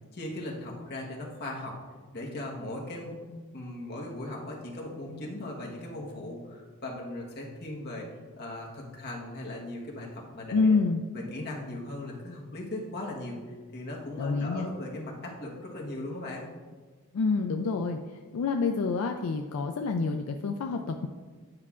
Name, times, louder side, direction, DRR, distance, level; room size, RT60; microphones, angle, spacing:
voice 1, 0.1-1.8 2.1-3.2 3.5-8.1 8.4-10.8 11.1-13.4 13.7-16.4, left 1 dB, 50° left, -2 dB, 1.2 m, -38 dB
voice 2, 10.5-11.0 14.2-14.7 17.1-18.0 18.3-21.1, left 4 dB, 75° left, 4 dB, 0.4 m, -27 dB
9.5 x 5.5 x 2.4 m, 1.4 s
head